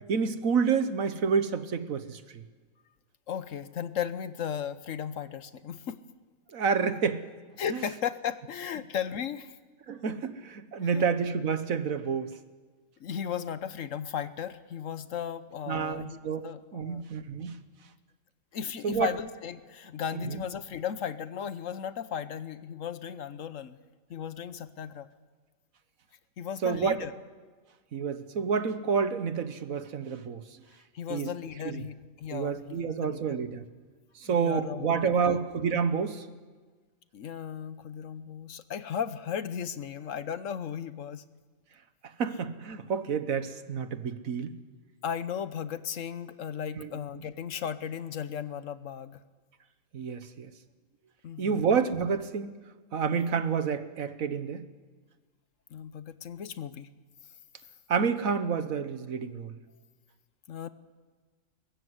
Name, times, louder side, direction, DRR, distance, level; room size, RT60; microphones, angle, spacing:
voice 1, 0.1-2.4 6.5-7.2 7.7-7.8 9.9-12.3 15.7-16.5 16.7-17.5 18.8-19.1 20.1-20.4 26.6-27.1 27.9-30.4 31.1-31.3 31.6-31.8 32.3-33.6 34.1-36.3 42.2-44.5 46.7-46.9 49.9-50.5 51.4-52.5 52.9-54.6 57.9-59.6, right 6 dB, 70° right, 11 dB, 1.6 m, -29 dB
voice 2, 3.3-6.0 7.6-9.6 10.8-11.1 13.0-16.2 16.4-17.0 18.5-23.8 24.1-25.1 26.4-27.1 30.9-33.4 34.2-35.4 37.1-41.2 45.0-49.2 51.2-51.7 55.7-56.9 60.5-60.7, left 8 dB, 65° left, 13 dB, 1.2 m, -36 dB
22.5 x 19.5 x 8.1 m, 1.4 s
omnidirectional pair, 1.5 m